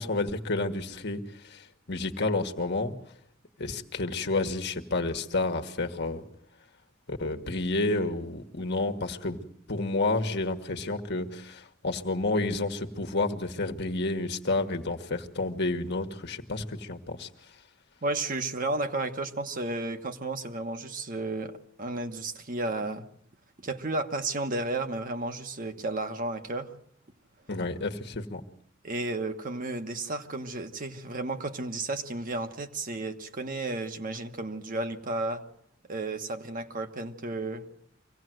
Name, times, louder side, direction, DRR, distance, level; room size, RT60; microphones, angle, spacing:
voice 1, 0.0-2.9 3.6-6.2 7.1-17.3 27.5-28.4, left 2 dB, 60° left, 5 dB, 1.5 m, -30 dB
voice 2, 18.0-23.1 23.6-26.7 28.8-35.4 35.9-37.6, right 2 dB, 45° right, 6 dB, 1.3 m, -33 dB
24.5 x 17.0 x 7.8 m, 0.68 s
head